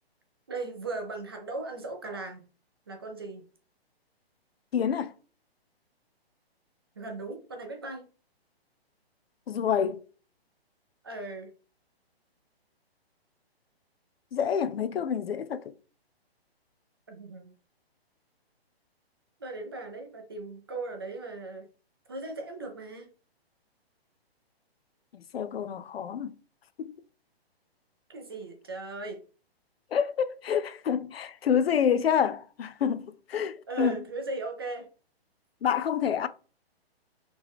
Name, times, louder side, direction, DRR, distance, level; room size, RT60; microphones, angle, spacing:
voice 1, 0.5-2.4 2.9-3.4 7.0-8.0 11.0-11.5 17.1-17.5 19.4-21.7 22.1-23.1 28.1-29.2 33.7-34.9, right 3 dB, 25° right, 0.5 m, -37 dB
voice 2, 4.7-5.1 9.5-10.0 14.3-15.6 25.3-26.3 26.8-26.9 29.9-34.0 35.6-36.3, left 8 dB, 70° left, 0.5 m, -27 dB
4.2 x 2.9 x 3.5 m
hypercardioid pair, 165°, 32 cm